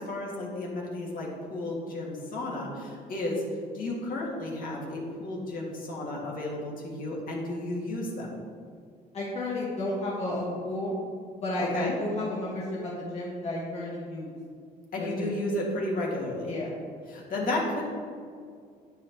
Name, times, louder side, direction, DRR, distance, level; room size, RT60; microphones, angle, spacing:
voice 1, 0.0-3.4 3.7-8.4 11.6-12.0 14.9-16.6 17.1-17.8, left 1 dB, 55° left, -3 dB, 2.2 m, -33 dB
voice 2, 9.1-10.9 11.4-14.3 15.0-15.3 16.5-16.7, left 1 dB, 40° left, -5 dB, 1.7 m, -32 dB
10.0 x 8.2 x 3.1 m, 2.2 s
cardioid pair, 110°, 17 cm